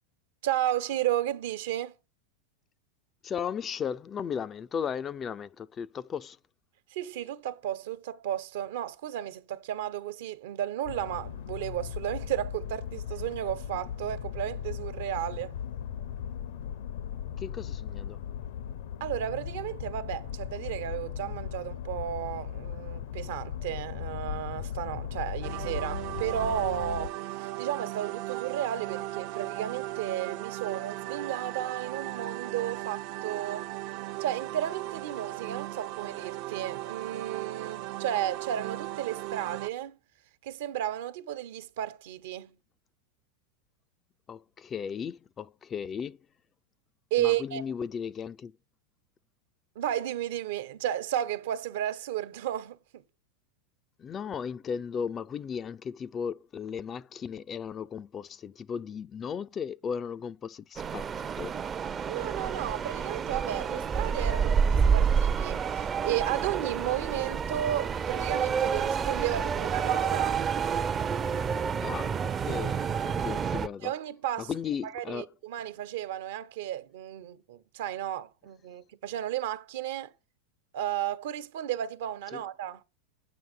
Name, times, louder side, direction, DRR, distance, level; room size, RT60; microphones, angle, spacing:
voice 1, 0.4-1.9 6.9-15.5 19.0-33.7 34.2-40.0 40.4-42.6 47.1-47.6 49.7-53.0 62.0-70.4 73.8-74.5 74.8-80.1 80.7-82.8, right 11 dB, 70° right, 1.2 m, -33 dB
voice 2, 3.2-6.4 17.4-18.2 44.3-46.2 47.2-48.5 54.0-61.1 61.4-61.5 71.8-73.9 74.5-75.3 82.3-82.4, left 7 dB, 25° left, 0.5 m, -36 dB
sound 1, 10.8-27.1, left 9 dB, 75° left, 1.0 m, -37 dB
sound 2, 25.4-39.7, right 16 dB, 55° right, 0.7 m, -37 dB
sound 3, 60.8-73.7, right 6 dB, 25° right, 0.6 m, -29 dB
9.1 x 7.8 x 5.4 m
supercardioid pair, 125°, 0 cm